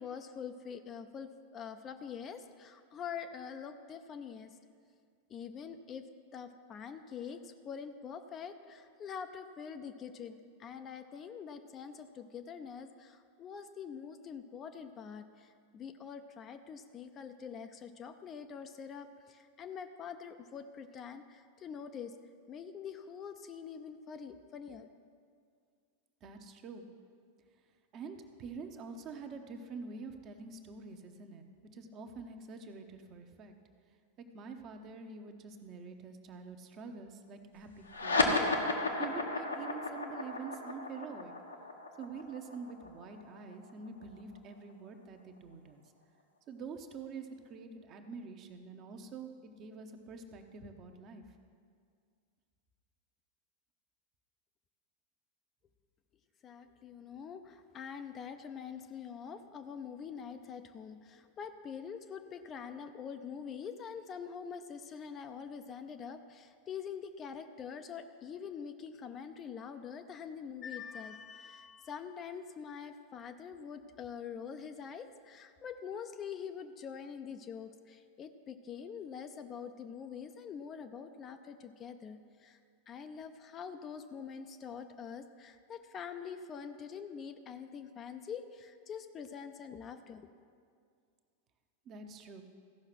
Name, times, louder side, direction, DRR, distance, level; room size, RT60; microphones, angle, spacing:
voice 1, 0.0-4.6 5.3-6.1 6.3-22.1 22.5-24.9 56.4-82.6 82.9-90.3, left 7 dB, 25° left, 8 dB, 0.5 m, -45 dB
voice 2, 26.2-26.8 27.9-31.5 31.7-33.5 34.3-38.4 39.0-41.3 42.0-45.8 46.5-51.3 91.8-92.4, right 4 dB, 35° right, 5 dB, 0.9 m, -46 dB
sound 1, 37.9-44.7, left 2 dB, 75° left, 1.1 m, -34 dB
15.0 x 5.7 x 6.0 m, 2.2 s
figure-of-eight pair, 90°, 0 cm